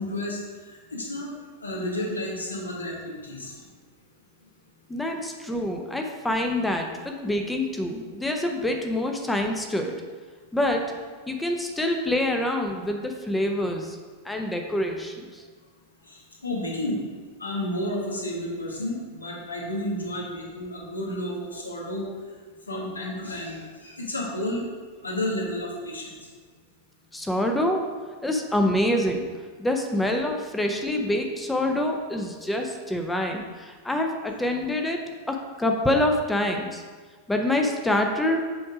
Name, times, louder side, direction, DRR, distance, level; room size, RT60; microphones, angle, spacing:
voice 1, 0.0-3.7 10.6-10.7 16.0-17.0 17.4-22.1 22.7-24.7 25.0-26.1, left 1 dB, 80° left, -2 dB, 1.4 m, -31 dB
voice 2, 4.9-10.0 10.5-10.9 11.3-14.0 14.2-15.4 27.1-27.8 28.2-29.2 29.6-35.0 35.3-36.8 37.3-38.4, left 1 dB, 5° left, 3 dB, 0.7 m, -26 dB
7.7 x 3.5 x 4.8 m, 1.5 s
figure-of-eight pair, 90°, 0 cm